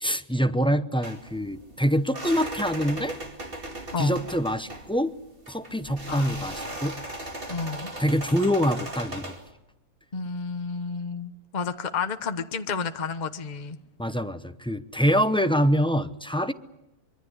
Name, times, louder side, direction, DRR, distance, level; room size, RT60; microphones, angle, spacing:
voice 1, 0.0-3.2 4.0-5.1 5.5-7.0 8.0-9.3 14.0-16.5, equal, 5° left, 10 dB, 0.4 m, -25 dB
sound 1, 1.0-9.5, right 1 dB, 40° right, 2.7 m, -38 dB
voice 2, 7.5-7.9 10.1-13.8, left 5 dB, 35° left, 8 dB, 1.1 m, -31 dB
25.0 x 23.5 x 8.2 m, 0.94 s
omnidirectional pair, 1.5 m